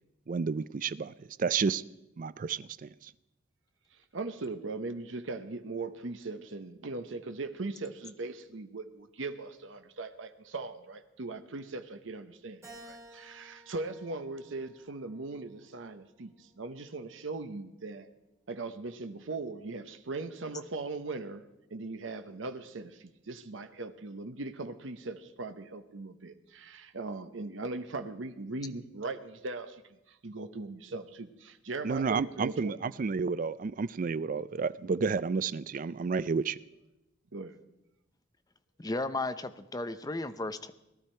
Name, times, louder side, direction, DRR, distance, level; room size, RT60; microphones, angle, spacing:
voice 1, 0.3-1.8 2.2-3.1 31.8-36.6, right 5 dB, 45° right, 0.4 m, -31 dB
voice 2, 4.1-18.1 18.5-21.4 21.7-29.8 30.1-32.8 37.3-37.5, right 3 dB, 75° right, 0.8 m, -39 dB
Keyboard (musical), 12.6-15.1 15.7-16.9, right 1 dB, 15° right, 4.2 m, -54 dB
voice 3, 38.8-40.7, left 2 dB, 20° left, 0.6 m, -34 dB
18.5 x 12.0 x 4.4 m
head